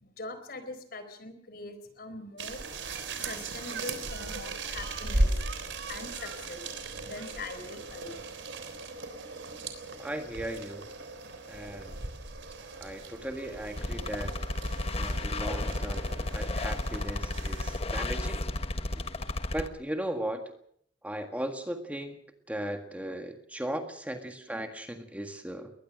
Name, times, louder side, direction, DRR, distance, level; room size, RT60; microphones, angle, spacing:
voice 1, 0.0-2.7 3.1-6.6 7.0-8.3 8.8-8.9, left 2 dB, 55° left, 10 dB, 4.2 m, -42 dB
sound 1, 2.4-17.8, right 2 dB, 75° right, 3.5 m, -37 dB
voice 2, 10.0-10.9 11.5-11.9 12.8-14.4 15.0-18.4 18.9-19.0 19.5-20.4 21.0-22.2 22.5-25.7, right 1 dB, 10° right, 5 dB, 1.7 m, -37 dB
sound 2, 13.8-19.7, left 2 dB, 35° left, 1.3 m, -33 dB
22.0 x 20.0 x 6.4 m, 0.65 s
head